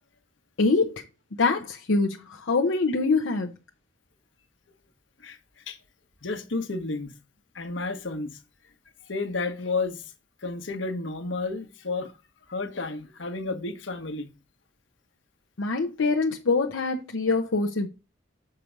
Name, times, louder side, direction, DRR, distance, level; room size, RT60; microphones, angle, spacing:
voice 1, 0.6-1.0 1.4-3.5 15.6-17.9, left 3 dB, 90° left, 0.7 m, -24 dB
voice 2, 6.2-7.1 7.5-8.3 9.1-10.0 10.4-12.1 12.5-14.3, left 3 dB, 75° left, 1.2 m, -31 dB
6.8 x 4.5 x 5.1 m
head